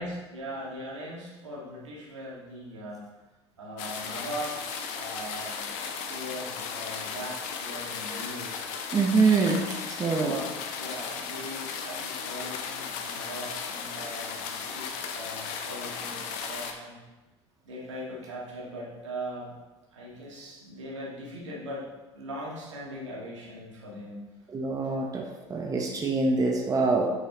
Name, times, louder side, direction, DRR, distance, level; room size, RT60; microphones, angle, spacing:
voice 1, 0.0-3.1 3.6-5.7 6.1-8.5 10.1-17.0 17.6-19.5 19.9-21.9 22.1-24.2, equal, 80° right, -5 dB, 2.2 m, -40 dB
sound 1, 3.8-16.7, left 6 dB, 55° left, 0.9 m, -36 dB
voice 2, 8.9-10.4 24.5-27.1, right 3 dB, 20° right, 1 dB, 1.1 m, -25 dB
8.1 x 6.1 x 3.1 m, 1.1 s
figure-of-eight pair, 70°, 15 cm